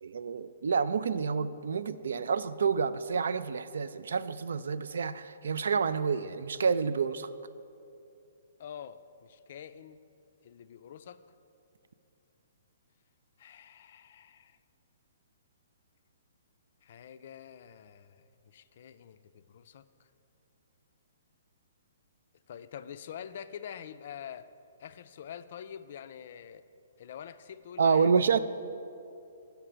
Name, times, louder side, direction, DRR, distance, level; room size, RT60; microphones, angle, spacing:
voice 1, 0.0-7.3 27.8-28.4, right 6 dB, 65° right, 14 dB, 0.3 m, -28 dB
voice 2, 8.6-10.0 10.4-11.2 13.4-14.6 16.8-19.8 22.5-24.5 24.8-26.6 27.0-28.1, left 8 dB, 50° left, 12 dB, 0.3 m, -46 dB
6.6 x 5.7 x 7.3 m, 2.6 s
figure-of-eight pair, 125°, 0 cm